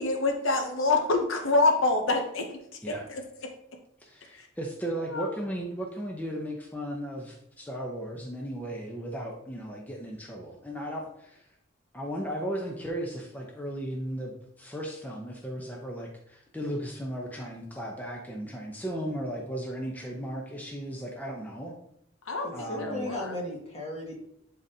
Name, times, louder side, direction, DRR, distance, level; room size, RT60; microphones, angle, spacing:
voice 1, 0.0-2.5 2.9-3.2 4.3-4.5 5.1-5.3 22.3-23.3, left 3 dB, 70° left, 4 dB, 0.8 m, -26 dB
voice 2, 4.0-11.4 11.9-21.7 22.5-23.1, right 1 dB, 10° left, -1 dB, 0.7 m, -36 dB
voice 3, 22.4-24.2, left 1 dB, 35° left, -2 dB, 1.8 m, -36 dB
10.5 x 4.1 x 2.8 m, 0.78 s
head